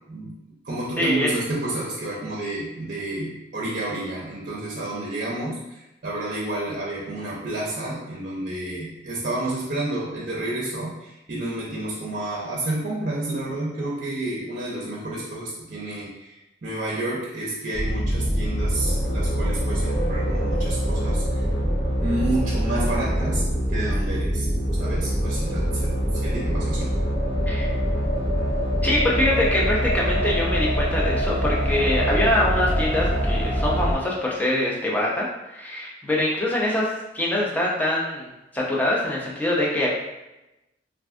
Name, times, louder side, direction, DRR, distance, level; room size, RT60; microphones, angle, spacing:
voice 1, 0.1-21.5 22.0-24.5 24.8-26.9, right 2 dB, 50° right, -5 dB, 0.6 m, -30 dB
voice 2, 1.0-1.3 27.4-27.7 28.8-36.9 37.1-39.9, left 1 dB, 10° left, -4 dB, 0.5 m, -24 dB
sound 1, 17.7-34.0, equal, 80° left, 1.2 m, -24 dB
2.5 x 2.3 x 3.4 m, 0.94 s
head